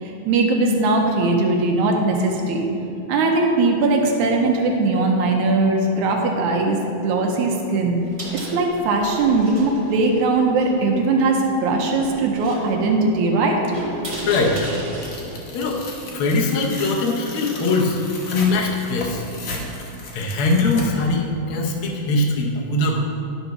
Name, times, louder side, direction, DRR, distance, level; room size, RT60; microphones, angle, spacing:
voice 1, 0.0-2.7 3.1-8.0 8.5-13.6, right 3 dB, 75° right, 1 dB, 2.0 m, -20 dB
sound 1, 7.9-16.7, right 1 dB, 40° right, 0.4 m, -36 dB
voice 2, 14.2-14.6 15.5-15.8 16.1-18.0 18.2-19.2 20.1-23.0, left 2 dB, 80° left, 0 dB, 1.2 m, -21 dB
Tearing, 15.0-21.1, left 2 dB, 60° left, 1.4 m, -35 dB
11.0 x 4.1 x 5.9 m, 2.7 s
omnidirectional pair, 3.7 m